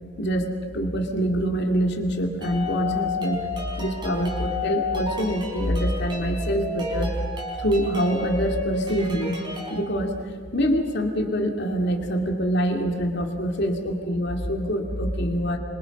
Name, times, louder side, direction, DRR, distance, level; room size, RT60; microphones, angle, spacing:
voice 1, 0.2-3.5 3.8-7.1 7.6-9.4 9.7-10.1 10.5-15.6, equal, 50° left, 3 dB, 2.8 m, -25 dB
sound 1, 2.4-9.8, left 3 dB, 20° right, 4.3 m, -31 dB
26.5 x 26.0 x 5.6 m, 2.1 s
head